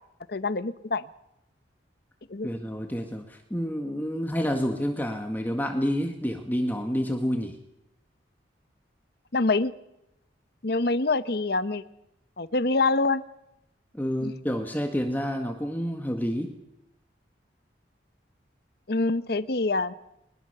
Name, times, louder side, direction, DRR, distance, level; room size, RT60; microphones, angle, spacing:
voice 1, 0.3-1.0 2.3-2.5 9.3-9.7 10.6-11.8 12.4-13.2 14.2-14.3 18.9-19.9, left 3 dB, 55° left, 14 dB, 0.9 m, -25 dB
voice 2, 2.4-7.6 13.9-16.5, equal, 10° left, 4 dB, 1.6 m, -29 dB
22.5 x 21.0 x 6.8 m, 0.85 s
head